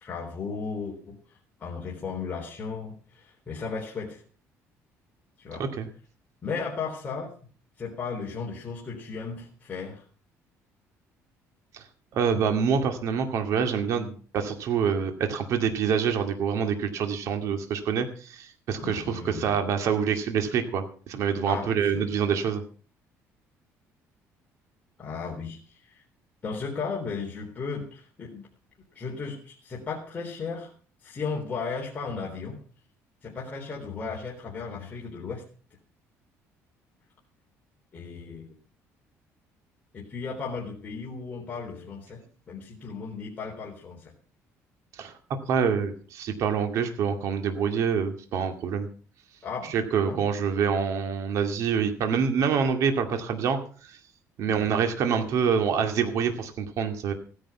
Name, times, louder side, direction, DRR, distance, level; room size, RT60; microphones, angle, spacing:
voice 1, 0.0-1.2 1.6-4.2 5.4-5.6 6.4-7.3 7.8-10.0 18.8-19.5 21.5-21.9 25.0-26.0 26.4-28.5 28.9-30.7 31.0-32.6 33.2-35.4 37.9-38.5 39.9-44.1 49.4-49.7 50.1-50.2 54.5-54.7, left 5 dB, 30° left, -2 dB, 3.6 m, -35 dB
voice 2, 5.5-5.9 11.7-11.8 12.1-22.6 44.9-45.1 45.5-48.9 49.7-54.0 54.4-57.1, right 7 dB, 65° right, 6 dB, 2.3 m, -26 dB
16.0 x 10.5 x 5.7 m, 0.41 s
cardioid pair, 130°, 6 cm